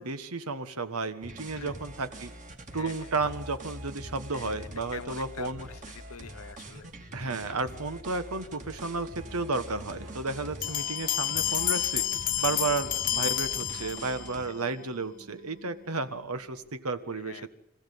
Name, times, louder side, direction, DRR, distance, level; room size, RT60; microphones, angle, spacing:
voice 1, 0.0-2.3 2.7-5.7 7.1-12.1 12.4-17.5, right 3 dB, 85° right, 11 dB, 1.5 m, -33 dB
sound 1, 1.2-14.5, right 1 dB, 35° right, 2.7 m, -44 dB
voice 2, 2.7-3.1 4.3-6.9 7.3-7.4 12.5-12.6 14.5-14.6 17.2-17.5, left 6 dB, 75° left, 15 dB, 0.8 m, -45 dB
sound 2, 7.9-16.7, right 1 dB, 55° right, 1.9 m, -55 dB
sound 3, 10.6-14.4, left 13 dB, 40° left, 0.7 m, -29 dB
26.0 x 15.5 x 8.5 m, 0.86 s
head